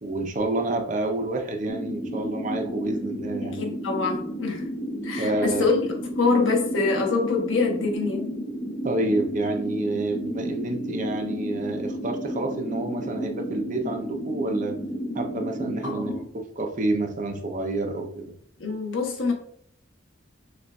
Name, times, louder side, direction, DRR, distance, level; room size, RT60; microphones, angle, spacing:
voice 1, 0.0-3.6 5.2-5.7 8.8-14.8 15.1-18.3, right 2 dB, 40° right, 5 dB, 0.5 m, -28 dB
sound 1, 1.7-16.2, equal, 30° left, 0.6 m, -32 dB
voice 2, 3.4-4.7 5.0-5.8 6.2-8.3 15.8-16.3 18.6-19.3, left 4 dB, 85° left, 1 dB, 1.0 m, -25 dB
6.4 x 2.5 x 2.3 m, 0.65 s
head